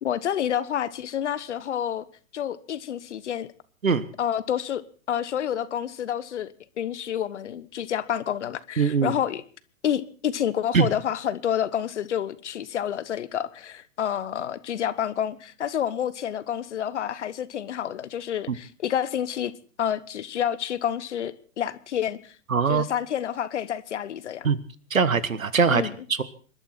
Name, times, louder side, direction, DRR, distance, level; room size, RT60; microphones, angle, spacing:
voice 1, 0.0-2.0 2.3-3.5 4.2-4.8 5.1-6.5 6.8-9.4 9.8-19.5 19.8-22.3 22.7-24.5 25.7-25.9, left 9 dB, 60° left, 1.2 m, -29 dB
voice 2, 8.8-9.1 10.7-10.9 18.5-18.6 22.5-22.8 24.4-24.6 24.9-25.8 26.1-26.2, right 5 dB, 75° right, 1.5 m, -21 dB
27.0 x 12.5 x 4.4 m
figure-of-eight pair, 110°, 40 cm